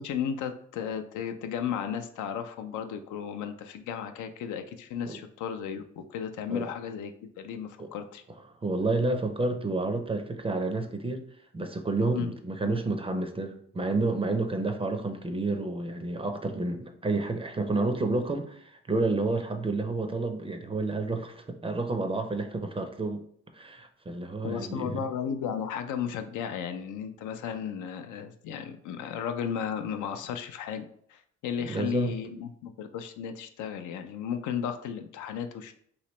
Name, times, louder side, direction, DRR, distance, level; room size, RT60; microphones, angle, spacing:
voice 1, 0.0-8.2 12.1-12.3 12.6-12.7 24.4-35.7, left 8 dB, 75° left, 7 dB, 0.5 m, -34 dB
voice 2, 8.6-11.2 11.5-23.2 23.5-25.0 31.6-32.1, right 3 dB, 20° right, 6 dB, 0.4 m, -30 dB
3.1 x 2.9 x 3.0 m, 0.63 s
cardioid pair, 90°, 30 cm